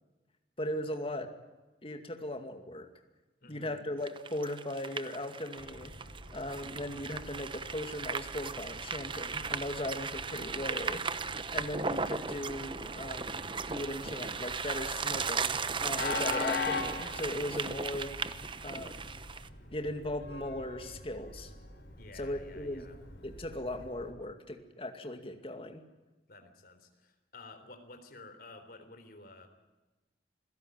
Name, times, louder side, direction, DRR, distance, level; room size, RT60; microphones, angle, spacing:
voice 1, 0.6-1.3 1.8-2.9 3.5-5.9 6.3-11.0 11.5-18.1 18.6-19.1 19.7-21.5 22.1-22.9 23.2-25.8, left 1 dB, 30° left, 6 dB, 2.3 m, -38 dB
voice 2, 3.4-3.8 22.0-23.0 26.3-29.5, left 2 dB, 55° left, 7 dB, 3.6 m, -52 dB
sound 1, 4.0-19.5, right 5 dB, 30° right, 0.9 m, -37 dB
Train, 5.6-24.1, left 3 dB, 85° left, 4.8 m, -43 dB
27.5 x 16.5 x 9.1 m, 1.1 s
head